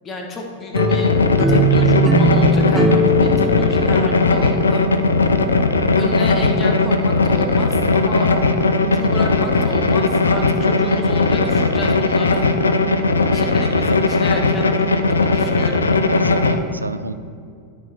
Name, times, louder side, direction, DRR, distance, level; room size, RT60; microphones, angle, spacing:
voice 1, 0.0-1.1 1.5-4.9 5.7-8.3 8.8-12.5 13.3-15.9, left 2 dB, 25° left, 1 dB, 1.6 m, -31 dB
sound 1, 0.7-16.6, left 3 dB, 75° left, 0.6 m, -17 dB
sound 2, 0.8-5.7, right 1 dB, 10° right, 0.6 m, -20 dB
voice 2, 13.7-14.1 16.1-17.1, right 2 dB, 80° right, 11 dB, 0.4 m, -28 dB
13.5 x 5.2 x 4.7 m, 2.3 s
figure-of-eight pair, 90°, 0 cm